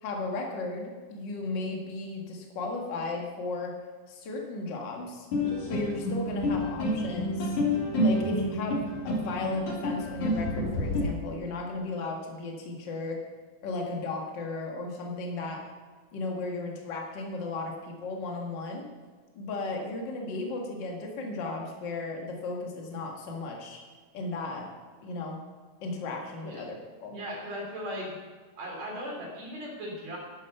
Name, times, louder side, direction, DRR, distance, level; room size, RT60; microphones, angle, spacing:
voice 1, 0.0-3.7 4.1-5.3 5.7-7.6 8.0-13.2 13.6-15.7 16.1-18.8 19.4-23.8 24.1-24.7 25.0-25.4 25.8-27.2, left 3 dB, 40° left, 1 dB, 1.9 m, -35 dB
sound 1, 5.3-11.0, left 1 dB, 55° left, 3.9 m, -29 dB
voice 2, 27.1-28.1 28.6-30.2, equal, 50° right, -2 dB, 4.7 m, -37 dB
11.5 x 10.5 x 5.7 m, 1.4 s
omnidirectional pair, 4.1 m